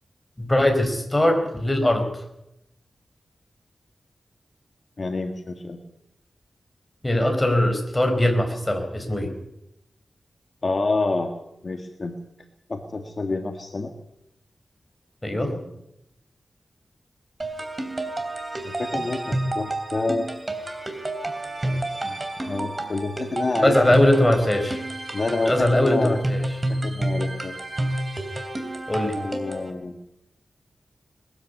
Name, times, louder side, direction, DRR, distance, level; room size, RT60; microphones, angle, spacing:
voice 1, 0.4-2.1 7.0-9.3 15.2-15.5 23.6-24.8 25.4-26.4 28.9-29.2, left 1 dB, 15° left, 4 dB, 4.3 m, -21 dB
voice 2, 5.0-5.8 10.6-11.3 11.6-12.2 12.7-13.9 15.3-15.6 18.6-20.3 21.7-22.2 22.5-24.0 25.1-26.2 26.7-27.6 29.2-30.0, left 3 dB, 40° left, 4 dB, 1.7 m, -28 dB
sound 1, 17.4-29.7, right 1 dB, 25° right, 3.0 m, -29 dB
21.0 x 14.0 x 9.5 m, 0.84 s
wide cardioid pair, 140°, 0 cm